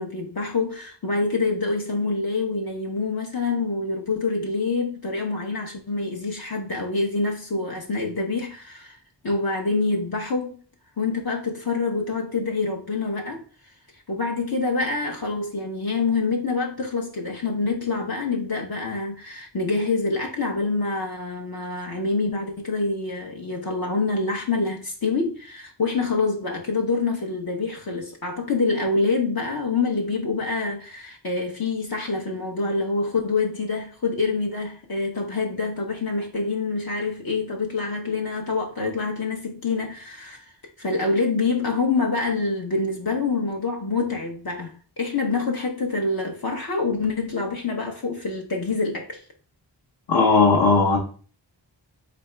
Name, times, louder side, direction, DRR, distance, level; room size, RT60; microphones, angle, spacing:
voice 1, 0.0-9.0 9.2-10.6 11.0-13.4 14.1-40.4 40.8-49.2, left 3 dB, 50° left, 0.8 m, -26 dB
voice 2, 50.1-51.0, left 4 dB, 75° left, 1.1 m, -17 dB
4.0 x 3.4 x 3.2 m
cardioid pair, 40°, 45 cm